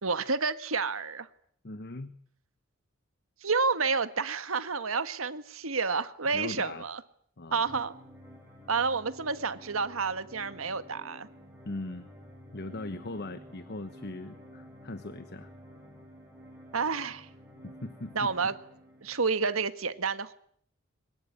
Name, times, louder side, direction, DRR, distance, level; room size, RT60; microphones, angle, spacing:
voice 1, 0.0-1.3 3.4-7.0 7.5-7.9 8.7-11.3 16.7-17.3 18.1-18.6 19.0-20.3, right 4 dB, 75° right, 11 dB, 1.6 m, -30 dB
voice 2, 1.6-2.2 6.3-6.9 7.4-7.8 11.6-12.1 12.5-15.5 17.6-18.3, left 2 dB, 50° left, 12 dB, 1.2 m, -40 dB
sound 1, 7.6-19.6, equal, 10° right, 7.4 m, -51 dB
23.0 x 20.0 x 9.9 m, 0.63 s
head